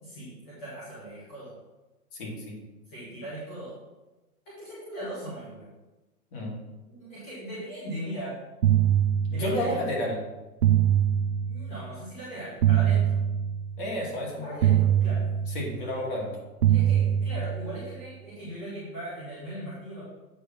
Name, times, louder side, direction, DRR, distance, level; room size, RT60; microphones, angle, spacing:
voice 1, 0.0-1.5 2.9-3.8 4.5-5.7 6.9-8.4 9.3-9.8 11.4-13.2 14.4-15.2 15.7-20.0, right 1 dB, 5° left, -11 dB, 0.5 m, -39 dB
voice 2, 2.2-2.6 6.3-6.5 9.3-10.2 13.8-14.8 15.5-16.3, left 1 dB, 35° left, -3 dB, 2.4 m, -31 dB
sound 1, 8.6-9.8 10.6-11.8 12.6-13.8 14.6-15.8 16.6-17.8, right 10 dB, 80° right, 0.9 m, -23 dB
8.4 x 3.5 x 5.7 m, 1.1 s
hypercardioid pair, 160°, 46 cm